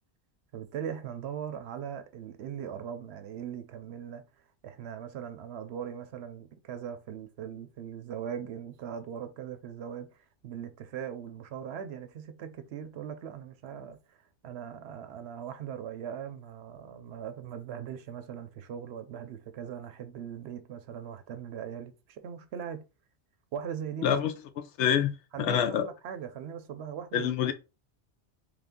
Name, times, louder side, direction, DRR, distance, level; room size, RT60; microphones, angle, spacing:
voice 1, 0.5-4.2 4.6-10.2 10.4-14.0 14.4-22.8 23.5-24.2 25.3-27.5, right 8 dB, 70° right, 0.8 m, -40 dB
voice 2, 24.0-24.3 24.8-25.1 25.4-25.9 27.1-27.5, left 9 dB, 85° left, 0.9 m, -26 dB
3.4 x 2.5 x 3.5 m
omnidirectional pair, 1.2 m